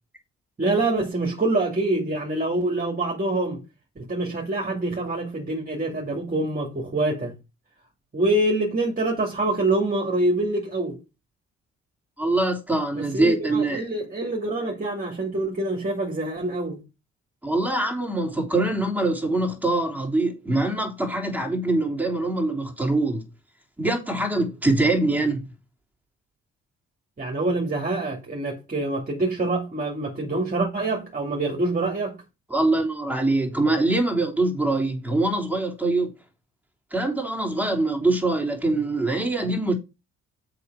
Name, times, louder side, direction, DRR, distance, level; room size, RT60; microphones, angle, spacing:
voice 1, 0.6-3.6 4.0-7.3 8.1-11.0 12.9-16.8 27.2-32.2, right 2 dB, 30° right, 2.5 m, -25 dB
voice 2, 12.2-13.8 17.4-23.2 23.8-25.5 32.5-36.1 36.9-39.7, right 2 dB, 5° right, 3.3 m, -23 dB
6.8 x 6.0 x 4.7 m
cardioid pair, 90°, 30 cm